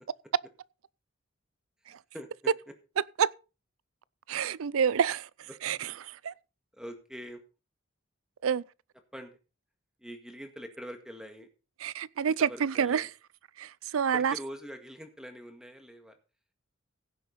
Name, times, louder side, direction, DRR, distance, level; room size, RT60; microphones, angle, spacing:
voice 1, 4.3-5.3 5.6-6.3 8.4-8.6 11.8-13.1 13.6-14.3, right 7 dB, 85° right, 0.5 m, -28 dB
voice 2, 6.8-7.4 9.1-9.3 10.0-11.5 12.2-13.1 14.1-16.1, equal, 5° right, 1.9 m, -43 dB
16.0 x 7.9 x 4.1 m
head